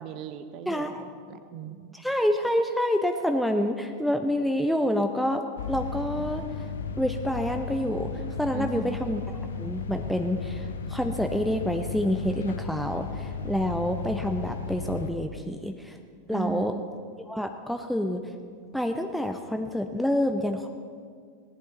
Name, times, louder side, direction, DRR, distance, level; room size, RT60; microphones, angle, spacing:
voice 1, 0.0-2.0 8.5-9.0 16.3-16.9, right 8 dB, 40° right, 10 dB, 0.9 m, -37 dB
voice 2, 0.7-1.0 1.9-5.4 5.7-6.4 7.0-16.0 16.3-16.7 17.3-18.3 18.7-20.7, equal, ahead, 5 dB, 0.6 m, -28 dB
sound 1, 5.6-15.1, left 5 dB, 65° left, 0.7 m, -35 dB
17.5 x 11.0 x 4.0 m, 2.1 s
figure-of-eight pair, 90°, 0 cm